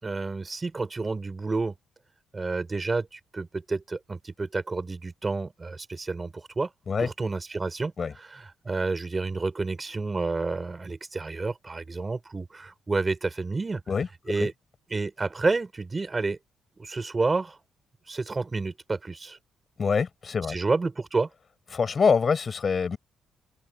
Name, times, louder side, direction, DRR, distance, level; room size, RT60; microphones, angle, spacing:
voice 1, 0.0-1.7 2.3-6.7 7.0-13.8 14.3-14.5 14.9-16.4 16.8-17.6 18.1-19.4 20.5-21.3, right 3 dB, 25° right, 5.6 m, -30 dB
voice 2, 19.8-20.6 21.7-23.0, left 5 dB, 40° left, 6.5 m, -25 dB
open air
cardioid pair, 90°, 0 cm